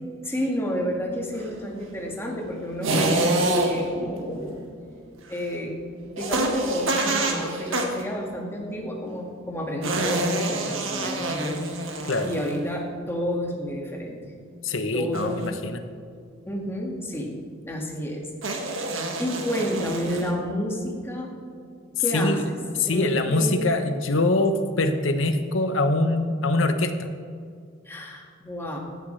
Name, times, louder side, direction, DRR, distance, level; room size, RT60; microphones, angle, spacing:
voice 1, 0.2-4.6 5.3-5.8 6.0-11.6 12.2-14.3 14.9-15.5 16.4-17.3 17.6-18.9 19.2-21.3 22.0-22.6 22.8-23.6 27.9-28.8, equal, 10° left, -1 dB, 1.9 m, -30 dB
sound 1, 2.8-4.0 6.2-8.0 9.8-12.7 15.1-15.5 18.4-20.3, right 2 dB, 90° right, 1.7 m, -26 dB
voice 2, 14.6-15.8 22.1-22.4 22.8-27.1, left 2 dB, 75° left, 8 dB, 1.0 m, -23 dB
15.5 x 11.5 x 3.3 m, 2.3 s
head